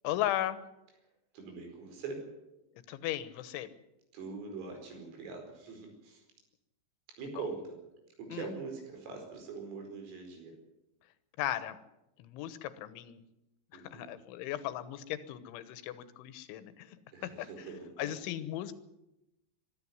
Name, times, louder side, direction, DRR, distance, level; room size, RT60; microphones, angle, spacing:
voice 1, 0.0-0.6 2.9-3.7 8.3-8.5 11.4-11.8 12.2-13.2 13.7-17.0 17.2-17.5 18.0-18.7, left 13 dB, 80° left, 13 dB, 3.5 m, -36 dB
voice 2, 1.3-2.3 4.1-6.2 7.2-7.8 8.2-10.5 13.7-14.1 17.1-18.2, right 4 dB, 85° right, 4 dB, 7.4 m, -43 dB
23.0 x 13.5 x 9.7 m, 0.91 s
omnidirectional pair, 5.6 m